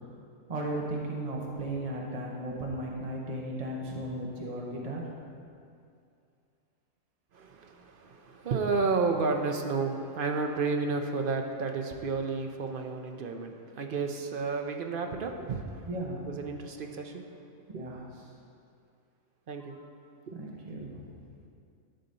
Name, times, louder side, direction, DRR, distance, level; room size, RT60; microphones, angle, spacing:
voice 1, 0.5-5.0 15.9-16.3 17.7-18.0 19.7-19.8 20.3-21.1, right 1 dB, 30° right, -1 dB, 1.0 m, -35 dB
voice 2, 7.3-15.9 16.3-17.3 17.7-17.9 19.5-19.8 20.3-20.4, right 4 dB, 55° right, 4 dB, 0.7 m, -31 dB
11.5 x 4.0 x 6.8 m, 2.4 s
omnidirectional pair, 1.4 m